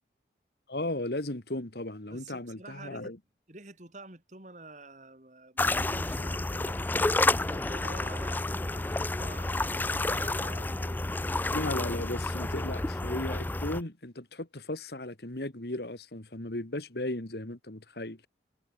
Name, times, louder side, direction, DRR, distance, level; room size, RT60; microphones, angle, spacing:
voice 1, 0.7-3.2 11.5-18.3, left 1 dB, 65° left, 2.1 m, -36 dB
voice 2, 2.1-3.1 3.5-11.0, right 2 dB, 40° right, 3.3 m, -48 dB
seashore tunisia - stone light, 5.6-13.8, left 2 dB, 10° left, 0.3 m, -30 dB
head